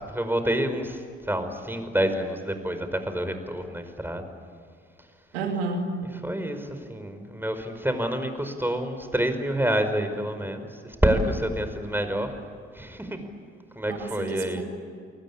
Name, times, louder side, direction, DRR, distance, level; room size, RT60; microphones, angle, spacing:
voice 1, 0.1-1.0 1.2-4.2 6.2-10.7 11.0-12.4 12.7-13.2 13.8-14.6, right 1 dB, 5° right, 8 dB, 5.1 m, -27 dB
voice 2, 5.3-5.9 13.9-14.7, right 3 dB, 90° right, 3 dB, 2.9 m, -30 dB
30.0 x 19.5 x 8.6 m, 2.2 s
hypercardioid pair, 45°, 31 cm